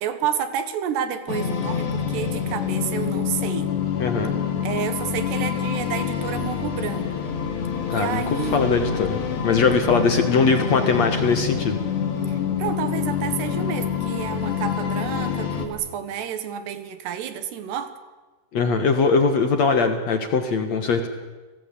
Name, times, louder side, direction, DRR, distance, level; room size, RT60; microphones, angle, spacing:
voice 1, 0.0-3.7 4.6-7.3 7.9-8.7 12.3-17.9, right 9 dB, 85° right, 10 dB, 3.6 m, -30 dB
sound 1, 1.3-15.7, left 7 dB, 85° left, 4.8 m, -26 dB
voice 2, 4.0-4.3 7.9-11.8 18.5-21.1, left 4 dB, 55° left, 6 dB, 2.1 m, -21 dB
30.0 x 18.0 x 8.5 m, 1.3 s
omnidirectional pair, 4.7 m